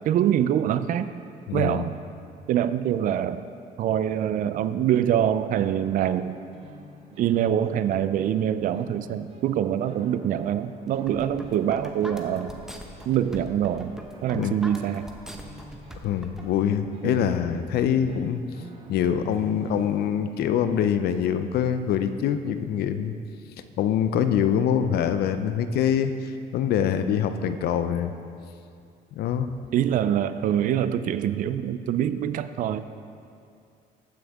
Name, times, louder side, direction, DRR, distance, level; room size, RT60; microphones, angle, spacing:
voice 1, 0.1-1.1 1.5-2.0 2.5-3.4 3.8-6.4 7.2-12.6 13.1-13.9 14.2-15.1 17.0-17.3 29.7-32.9, right 10 dB, 55° right, 13 dB, 0.4 m, -24 dB
voice 2, 1.5-1.8 14.3-14.6 16.0-18.4 18.9-23.1 23.8-28.1 29.2-29.5, left 8 dB, 70° left, 10 dB, 0.5 m, -24 dB
sound 1, 5.5-20.2, right 2 dB, 35° right, 1.2 m, -48 dB
sound 2, 10.9-16.4, equal, 5° right, 0.8 m, -42 dB
14.5 x 6.2 x 3.5 m, 2.4 s
cardioid pair, 110°, 17 cm